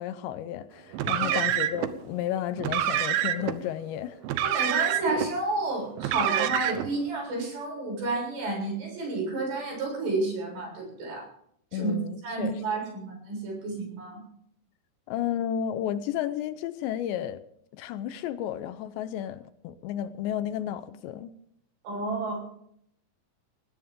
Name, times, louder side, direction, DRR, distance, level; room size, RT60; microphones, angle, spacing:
voice 1, 0.0-4.2 11.7-12.6 15.1-17.4 17.7-21.3, left 10 dB, 80° left, 2.9 m, -32 dB
Car, 0.9-1.9 2.6-3.6 4.2-5.3 6.0-6.9, right 11 dB, 85° right, 3.5 m, -27 dB
voice 2, 4.4-11.2 11.7-11.9 12.2-14.2 21.8-22.4, right 2 dB, 65° right, 9.5 m, -31 dB
21.0 x 17.0 x 3.7 m
omnidirectional pair, 5.3 m